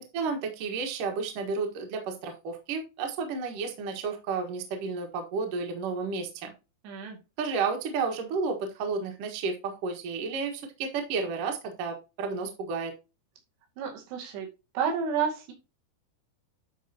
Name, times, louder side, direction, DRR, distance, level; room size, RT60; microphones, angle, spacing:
voice 1, 0.1-6.5 7.4-12.9, right 4 dB, 60° right, 4 dB, 2.8 m, -32 dB
voice 2, 6.8-7.2 13.8-14.5 14.7-15.5, right 7 dB, 80° right, 2 dB, 4.2 m, -30 dB
12.0 x 5.1 x 2.8 m, 0.27 s
omnidirectional pair, 4.8 m